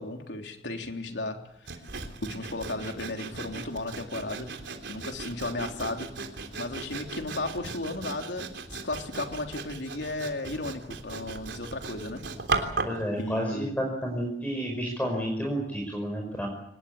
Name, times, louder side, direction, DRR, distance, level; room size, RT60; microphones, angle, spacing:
voice 1, 0.0-1.7 2.2-4.5 4.9-6.1 6.6-12.2 12.5-12.7 13.2-13.7, left 2 dB, 80° left, 4 dB, 3.5 m, -35 dB
Sawing, 1.7-13.0, right 3 dB, 80° right, 3.5 m, -37 dB
voice 2, 12.8-16.5, equal, 10° left, 0 dB, 5.5 m, -31 dB
25.0 x 20.0 x 8.5 m, 0.76 s
head